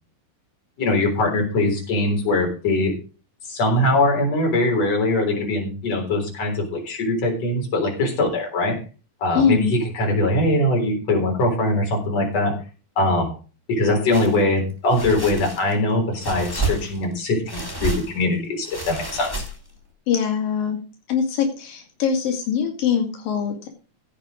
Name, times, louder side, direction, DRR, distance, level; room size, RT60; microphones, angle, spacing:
voice 1, 0.8-2.9 3.5-8.8 9.2-12.5 13.0-13.3 13.7-19.3, left 2 dB, 50° left, 1 dB, 5.0 m, -22 dB
voice 2, 9.3-9.8 20.1-20.8 21.1-23.7, left 7 dB, 90° left, 2 dB, 3.8 m, -22 dB
sound 1, 14.1-14.4 14.9-15.8 16.2-17.1 17.5-18.2 18.6-19.8, right 2 dB, 10° left, 1.4 m, -29 dB
15.5 x 6.6 x 5.1 m, 0.35 s
omnidirectional pair, 3.9 m